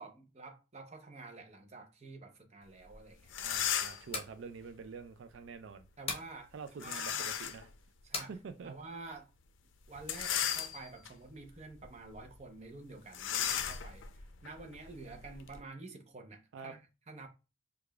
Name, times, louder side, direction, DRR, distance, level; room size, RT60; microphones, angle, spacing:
voice 1, 0.0-3.3 6.0-7.3 8.0-8.3 8.6-9.3 9.9-16.8 17.1-17.3, right 3 dB, 35° right, 0.7 m, -49 dB
sound 1, 2.9-3.0 3.3-4.1 6.8-7.7 8.2-8.3 10.0-11.1 11.7-11.9 12.1-12.3 13.1-15.6, left 9 dB, 85° left, 0.4 m, -36 dB
voice 2, 3.4-5.8 6.5-7.7 8.3-8.7 16.5-16.8, right 5 dB, 80° right, 0.3 m, -46 dB
sound 2, 4.1-4.4 6.1-6.3 8.1-8.3, left 4 dB, 30° left, 0.9 m, -38 dB
4.8 x 2.4 x 2.3 m
head